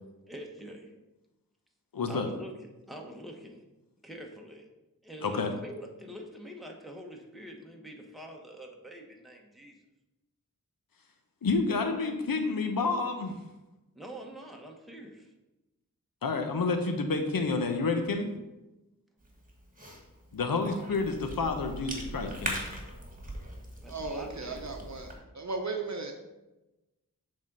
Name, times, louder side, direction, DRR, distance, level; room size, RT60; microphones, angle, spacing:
voice 1, 0.3-0.9 2.1-3.6 4.0-4.7 5.0-9.7 13.9-15.3 23.8-24.6, equal, ahead, 0 dB, 1.1 m, -45 dB
voice 2, 1.9-2.3 5.2-5.5 11.4-13.3 16.2-18.3 20.3-22.6, left 3 dB, 75° left, 5 dB, 0.8 m, -29 dB
Cough / Chewing mastication, 19.2-25.2, right 1 dB, 25° right, 1.7 m, -41 dB
voice 3, 23.9-26.1, right 3 dB, 50° right, 3 dB, 0.8 m, -36 dB
7.3 x 3.8 x 5.3 m, 1.0 s
wide cardioid pair, 60°, 35 cm